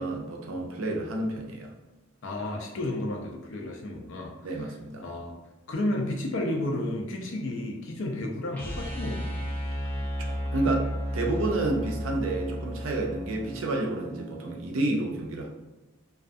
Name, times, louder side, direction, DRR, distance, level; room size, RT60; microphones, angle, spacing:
voice 1, 0.0-1.7 4.4-5.0 10.3-15.5, right 2 dB, 75° right, 1 dB, 0.5 m, -30 dB
voice 2, 2.2-4.7 5.0-5.4 5.7-9.4, left 1 dB, 65° left, 1 dB, 0.5 m, -32 dB
sound 1, 8.5-14.6, equal, 10° left, 0.4 m, -34 dB
2.4 x 2.3 x 2.5 m, 1.1 s
head